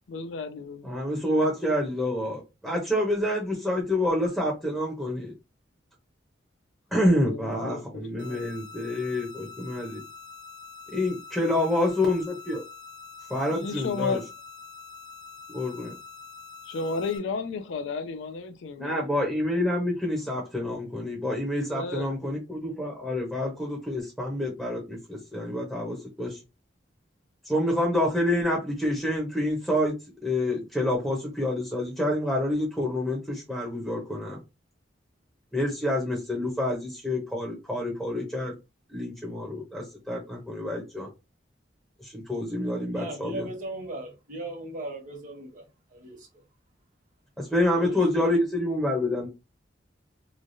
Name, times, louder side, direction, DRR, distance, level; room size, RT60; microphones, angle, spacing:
voice 1, 0.1-0.9 6.9-8.6 13.5-14.3 16.7-19.1 21.7-22.1, left 4 dB, 80° left, 0.4 m, -33 dB
voice 2, 0.8-5.3 6.9-10.0 10.9-12.6 13.3-14.2 15.5-16.0 18.8-26.4 27.4-29.9 30.2-34.4 35.5-38.5 38.9-41.1 42.0-43.5 47.4-49.3, left 1 dB, ahead, 0.7 m, -27 dB
sound 1, 8.2-17.2, left 5 dB, 65° right, 0.8 m, -45 dB
voice 3, 42.9-45.7 45.9-46.4 47.7-48.2, right 1 dB, 45° right, 1.1 m, -38 dB
3.1 x 2.2 x 2.6 m
head